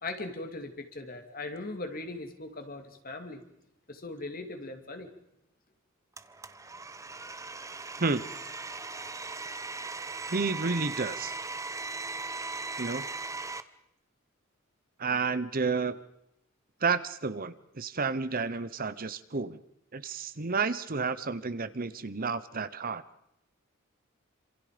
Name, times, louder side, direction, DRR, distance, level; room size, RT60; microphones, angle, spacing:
voice 1, 0.0-3.4 3.9-5.1, left 2 dB, 45° left, 6 dB, 2.8 m, -39 dB
Domestic sounds home sounds, 6.2-13.6, right 3 dB, 15° right, 0.9 m, -38 dB
voice 2, 10.3-11.3 12.8-13.1 15.0-16.0 16.8-19.6 19.9-23.0, right 4 dB, 45° right, 13 dB, 1.0 m, -31 dB
27.5 x 26.5 x 5.2 m, 0.79 s
head